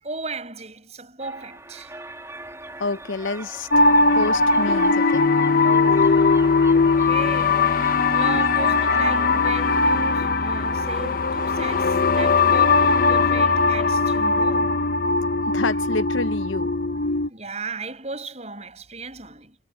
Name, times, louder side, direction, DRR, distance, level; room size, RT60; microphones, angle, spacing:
voice 1, 0.0-1.9 6.0-6.4 6.7-14.8 15.1-15.2 17.3-19.6, right 3 dB, 35° right, 6.7 m, -36 dB
sound 1, 1.2-9.5, right 2 dB, 15° right, 2.6 m, -39 dB
voice 2, 2.8-3.9 4.1-5.3 15.5-16.7, left 3 dB, 90° left, 0.9 m, -28 dB
sound 2, 3.7-17.3, left 4 dB, 45° left, 0.9 m, -19 dB
head